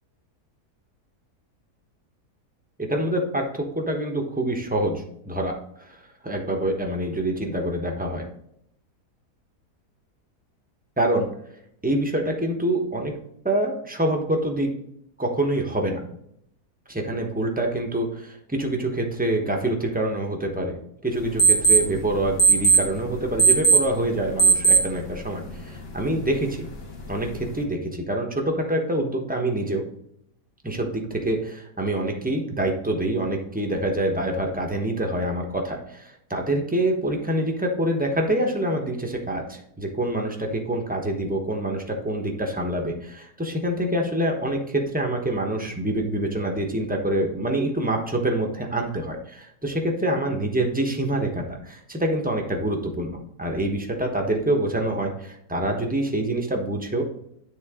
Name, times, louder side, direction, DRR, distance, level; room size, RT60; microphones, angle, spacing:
voice 1, 2.8-6.0 6.2-8.2 11.0-11.3 11.8-13.1 13.4-14.7 15.2-16.0 16.9-20.8 21.0-26.7 27.1-29.8 30.6-57.0, right 1 dB, 5° right, 1 dB, 0.9 m, -26 dB
sound 1, 21.1-27.6, right 5 dB, 45° left, 1.1 m, -22 dB
9.5 x 3.8 x 3.7 m, 0.74 s
omnidirectional pair, 1.7 m